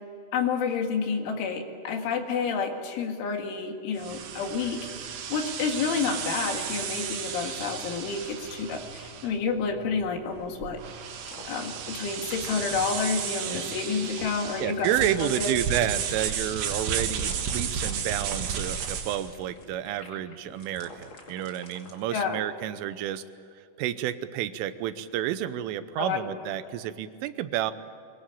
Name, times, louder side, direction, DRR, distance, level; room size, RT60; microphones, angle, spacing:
voice 1, 0.3-10.8 11.5-14.9 15.2-15.5 22.1-22.4 26.0-26.3 26.6-26.7, left 5 dB, 80° left, 4 dB, 4.4 m, -29 dB
sound 1, 4.0-19.3, right 7 dB, 65° right, 3.6 m, -33 dB
sound 2, 11.1-22.0, left 2 dB, 35° left, 2.2 m, -48 dB
voice 2, 14.6-23.2 23.8-27.7, right 12 dB, 90° right, 12 dB, 3.5 m, -30 dB
23.0 x 22.0 x 8.6 m, 2.4 s
omnidirectional pair, 5.5 m